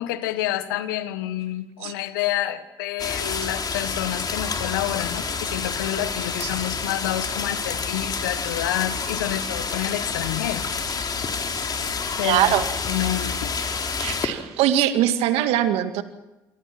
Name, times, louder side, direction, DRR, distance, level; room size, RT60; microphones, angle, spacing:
voice 1, 0.0-10.8 12.2-12.5 12.9-13.5, left 13 dB, 85° left, 12 dB, 1.5 m, -28 dB
sound 1, 3.0-14.3, left 5 dB, 40° left, 4.0 m, -28 dB
voice 2, 12.2-12.6 14.0-16.0, right 12 dB, 70° right, 9 dB, 2.1 m, -21 dB
28.0 x 24.0 x 6.1 m, 1.0 s
hypercardioid pair, 60°, 11 cm